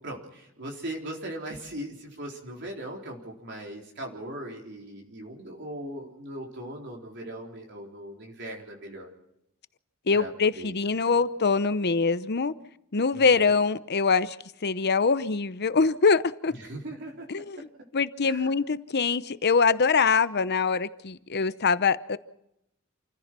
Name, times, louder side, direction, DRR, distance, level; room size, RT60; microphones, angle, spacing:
voice 1, 0.0-9.1 10.1-10.3 10.6-10.8 13.1-13.4 16.6-17.3 18.2-18.5, right 1 dB, 55° right, 3.9 m, -39 dB
voice 2, 10.1-12.5 12.9-14.4 14.6-16.5 17.3-17.6 17.9-22.2, left 4 dB, 50° left, 0.8 m, -24 dB
28.5 x 15.5 x 6.2 m
head